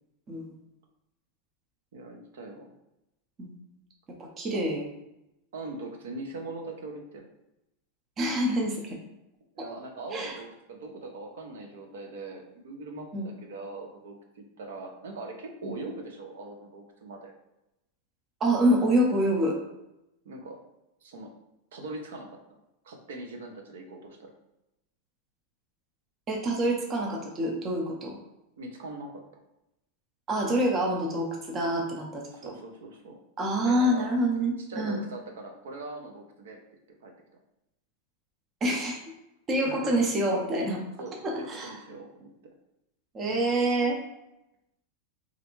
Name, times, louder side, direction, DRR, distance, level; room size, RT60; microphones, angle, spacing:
voice 1, 1.9-2.7 4.5-4.7 5.5-7.3 9.5-17.3 20.2-20.6 21.0-21.3 21.7-22.4 22.8-24.3 28.6-29.2 32.3-33.2 33.6-34.1 34.7-36.6 37.0-37.1 39.6-40.1 41.0-42.3, right 2 dB, 85° right, 3 dB, 0.7 m, -41 dB
voice 2, 4.2-4.9 8.2-9.0 9.6-9.7 10.1-10.3 13.1-13.3 15.6-15.7 18.4-19.6 26.3-28.2 30.3-32.5 33.4-35.0 38.6-39.0 39.5-40.8 41.2-41.8 43.1-44.0, right 1 dB, 20° right, 0 dB, 0.5 m, -26 dB
3.2 x 2.5 x 3.0 m, 0.89 s
supercardioid pair, 175°, 0 cm